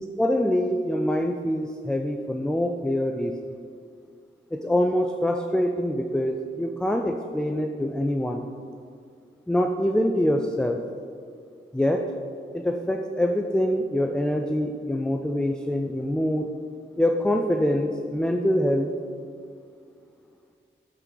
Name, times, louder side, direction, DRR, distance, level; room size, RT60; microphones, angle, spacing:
voice 1, 0.2-3.3 4.5-8.5 9.5-10.8 11.7-12.1 12.5-16.5 17.0-18.9, left 1 dB, 5° left, 4 dB, 0.3 m, -25 dB
10.5 x 4.5 x 3.8 m, 2.3 s
wide cardioid pair, 85°, 21 cm